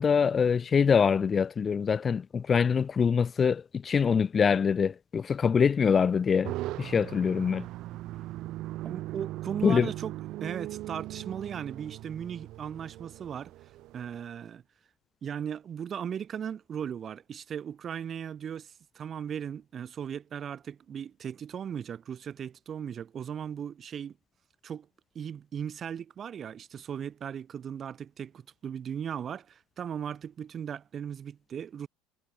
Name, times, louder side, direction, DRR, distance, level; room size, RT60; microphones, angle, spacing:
voice 1, 0.0-7.7 9.6-9.9, left 6 dB, 30° left, 1.0 m, -24 dB
sound 1, 6.4-14.2, right 16 dB, 60° right, 1.6 m, -39 dB
voice 2, 8.8-10.1 10.4-13.5 13.9-14.6 15.2-24.2 24.6-24.9 25.1-31.9, right 8 dB, 40° right, 5.0 m, -37 dB
hypercardioid pair, 85°, 0 cm